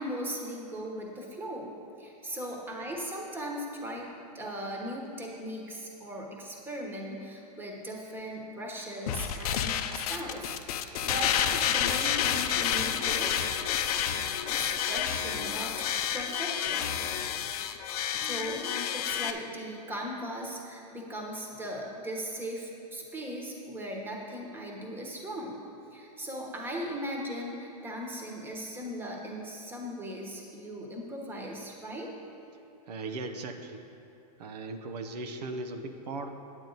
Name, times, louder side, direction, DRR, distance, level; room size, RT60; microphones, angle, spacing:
voice 1, 0.0-4.1 4.3-13.5 14.5-16.9 18.1-25.6 25.9-32.1, equal, 10° right, 0 dB, 1.2 m, -38 dB
sound 1, 9.1-19.3, left 9 dB, 65° left, 0.6 m, -30 dB
voice 2, 32.9-33.9 34.4-36.3, right 3 dB, 75° right, 6 dB, 0.8 m, -38 dB
9.1 x 8.7 x 4.0 m, 2.9 s
hypercardioid pair, 140°, 21 cm